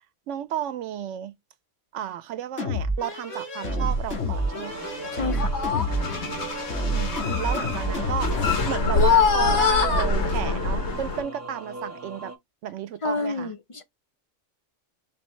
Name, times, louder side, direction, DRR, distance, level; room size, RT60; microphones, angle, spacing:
voice 1, 0.3-1.3 1.9-4.9 6.9-12.3 12.6-13.5, right 10 dB, 80° right, 0.9 m, -32 dB
sound 1, 2.6-8.8, equal, 85° left, 2.3 m, -29 dB
sound 2, 4.0-4.4 4.7-5.1 5.4-11.2, left 4 dB, 65° left, 1.4 m, -24 dB
sound 3, 4.3-12.4, right 3 dB, 15° right, 0.6 m, -39 dB
voice 2, 5.1-5.5 13.0-13.8, left 3 dB, 45° left, 0.4 m, -29 dB
5.1 x 2.7 x 3.1 m
omnidirectional pair, 1.2 m